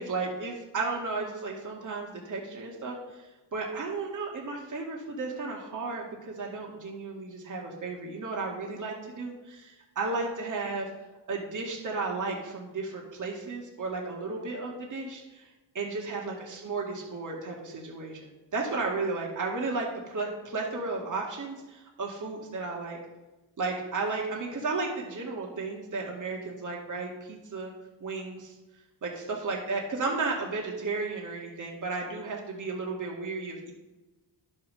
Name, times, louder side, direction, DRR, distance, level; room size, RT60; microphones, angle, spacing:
voice 1, 0.0-3.3 3.5-10.9 11.3-15.4 15.7-23.0 23.6-27.7 28.0-28.5 29.0-33.7, right 3 dB, 45° right, -2 dB, 2.2 m, -34 dB
10.5 x 5.7 x 6.4 m, 1.1 s
cardioid pair, 90°, 43 cm